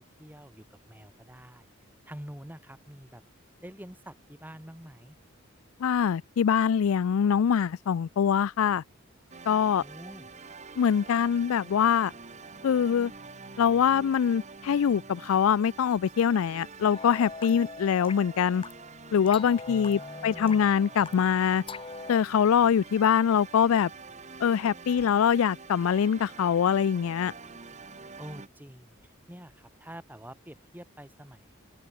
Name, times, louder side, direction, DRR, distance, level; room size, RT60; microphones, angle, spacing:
voice 1, 0.0-1.7 2.1-3.2 3.6-5.2 9.8-10.3 19.6-20.7 28.2-31.5, equal, 10° right, 2.3 m, -46 dB
voice 2, 5.8-8.8 9.5-9.8 10.8-12.1 12.6-13.1 13.6-18.6 19.1-21.6 22.1-23.9 24.4-27.3, left 7 dB, 80° left, 0.4 m, -24 dB
sound 1, 9.3-28.5, right 4 dB, 35° right, 1.4 m, -47 dB
sound 2, 16.9-22.2, left 4 dB, 25° left, 0.7 m, -43 dB
head